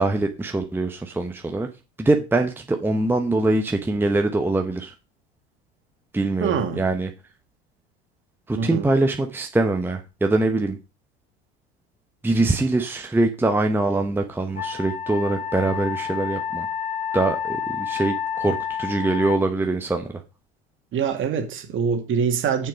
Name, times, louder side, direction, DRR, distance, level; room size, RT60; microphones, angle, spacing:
voice 1, 0.0-1.7 2.0-4.9 6.1-7.1 8.5-10.8 12.2-16.7 17.1-20.1, right 2 dB, 5° right, 4 dB, 0.9 m, -23 dB
voice 2, 6.4-6.8 8.5-8.9 20.9-22.7, right 6 dB, 40° right, 5 dB, 2.1 m, -24 dB
Wind instrument woodwind instrument, 14.6-19.4, left 7 dB, 30° left, 1.5 m, -29 dB
6.8 x 6.4 x 5.2 m, 0.31 s
hypercardioid pair, 80°, 32 cm